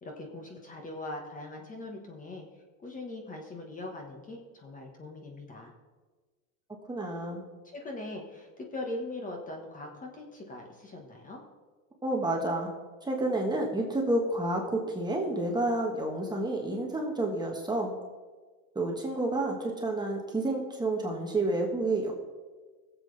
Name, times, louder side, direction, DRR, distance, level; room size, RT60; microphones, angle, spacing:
voice 1, 0.0-5.7 7.6-11.4, left 2 dB, 20° left, 2 dB, 1.5 m, -41 dB
voice 2, 6.9-7.5 12.0-12.7 13.0-18.0 18.7-22.1, right 2 dB, 10° right, 0 dB, 1.4 m, -30 dB
19.5 x 7.7 x 3.4 m, 1.4 s
supercardioid pair, 135°, 42 cm